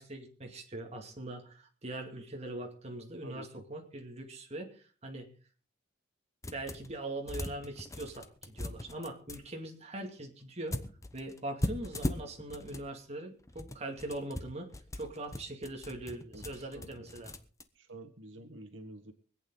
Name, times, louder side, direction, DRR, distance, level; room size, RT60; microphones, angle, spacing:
voice 1, 0.0-5.3 6.5-10.8 11.1-17.3, right 1 dB, 35° right, 2 dB, 2.3 m, -42 dB
sound 1, 6.4-7.0 7.3-9.4 10.7-12.9 13.4-17.6, left 1 dB, 15° left, 0.9 m, -39 dB
voice 2, 16.7-17.1 17.8-19.1, right 1 dB, 80° right, 7 dB, 1.5 m, -48 dB
24.5 x 8.7 x 3.9 m, 0.39 s
head